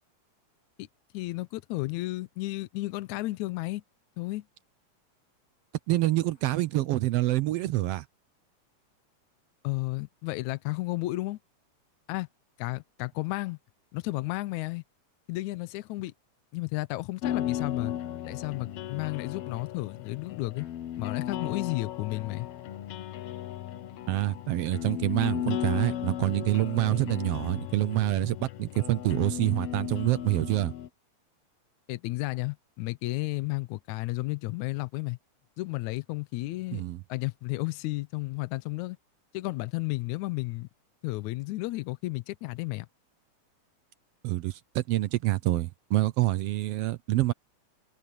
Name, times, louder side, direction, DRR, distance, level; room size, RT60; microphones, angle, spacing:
voice 1, 1.1-3.8 4.2-4.4 9.6-11.4 12.1-12.3 12.6-13.6 13.9-14.8 15.3-16.1 16.5-17.9 18.3-20.7 21.0-22.5 31.9-35.2 35.6-36.8 37.1-39.0 39.3-40.7 41.0-42.9, left 20 dB, 80° left, 2.0 m, -33 dB
voice 2, 5.9-8.0 24.1-30.7 36.7-37.0 44.2-47.3, right 16 dB, 75° right, 1.4 m, -27 dB
sound 1, 17.2-30.9, left 11 dB, 65° left, 1.8 m, -36 dB
omnidirectional pair, 3.4 m